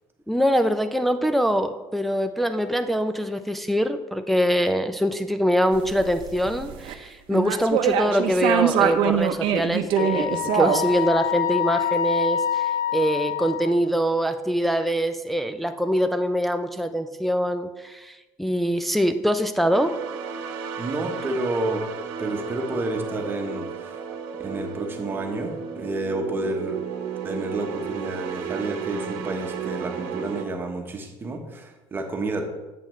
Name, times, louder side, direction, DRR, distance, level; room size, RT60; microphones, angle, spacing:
voice 1, 0.3-20.0, equal, ahead, 7 dB, 0.3 m, -24 dB
sound 1, 5.7-6.9 7.3-11.0, right 8 dB, 65° right, 0.6 m, -23 dB
Wind instrument woodwind instrument, 10.0-13.8, left 10 dB, 45° left, 0.7 m, -26 dB
sound 2, 19.7-30.5, right 7 dB, 85° right, 1.0 m, -33 dB
voice 2, 20.8-21.8 22.2-24.0 24.4-26.8 27.2-32.4, right 2 dB, 25° right, 4 dB, 1.0 m, -30 dB
8.3 x 7.8 x 3.1 m, 1.1 s
cardioid pair, 140°, 9 cm